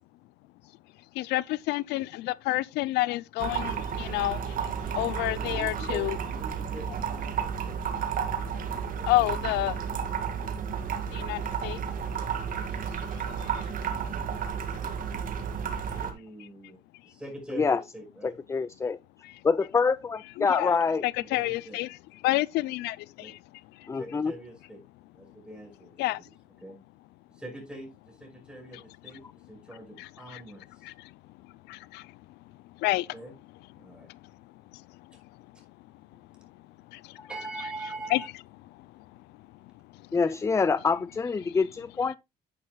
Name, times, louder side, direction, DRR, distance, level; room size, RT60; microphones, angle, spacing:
voice 1, 1.1-4.6 4.9-6.2 9.1-9.7 11.1-11.8 12.9-13.0 13.4-13.7 16.4-16.5 19.2-19.4 20.4-20.8 21.0-22.0 22.2-23.4 23.8-23.9 26.0-26.2 30.0-30.4 30.8-31.1 31.7-32.1 32.8-33.1 34.1-34.2 34.7-35.1 36.4-36.5 36.9-37.3 38.1-38.2 38.7-39.0 39.9-40.0 41.4-41.6, left 18 dB, 90° left, 0.5 m, -30 dB
sound 1, 3.4-16.1, right 7 dB, 55° right, 2.0 m, -32 dB
voice 2, 5.3-7.8 8.9-9.7 15.9-18.4 21.2-21.8 23.2-23.3 24.0-24.8 25.1-26.0 26.6-26.8 27.3-29.2 29.5-30.9 33.1-33.3 33.8-34.1 35.5-35.6 37.3-38.3, right 2 dB, 5° right, 5.6 m, -43 dB
voice 3, 18.2-19.0 19.4-21.0 23.9-24.3 37.2-37.3 40.1-42.2, left 5 dB, 15° left, 0.4 m, -26 dB
10.0 x 9.6 x 2.3 m
cardioid pair, 110°, 17 cm